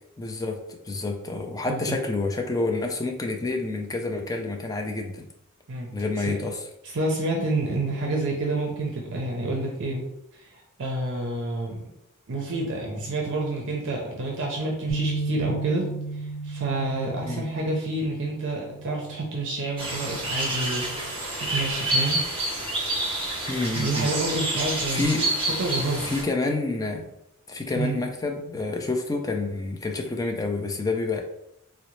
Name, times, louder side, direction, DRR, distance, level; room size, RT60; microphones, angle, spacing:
voice 1, 0.2-5.3 5.9-6.6 17.2-17.5 23.5-24.1 24.9-25.3 26.0-27.1 27.5-31.2, left 3 dB, 15° left, 3 dB, 0.3 m, -28 dB
voice 2, 1.7-2.1 5.7-5.9 6.3-6.4 6.8-10.0 10.3-11.9 12.3-20.8 21.3-22.2 23.7-25.1 25.6-26.1 27.8-27.9, right 2 dB, 55° right, -1 dB, 0.5 m, -29 dB
sound 1, 14.9-21.1, right 3 dB, 75° left, 1.0 m, -35 dB
sound 2, 19.8-26.2, right 1 dB, 25° right, 0.8 m, -28 dB
3.8 x 2.0 x 3.0 m, 0.84 s
head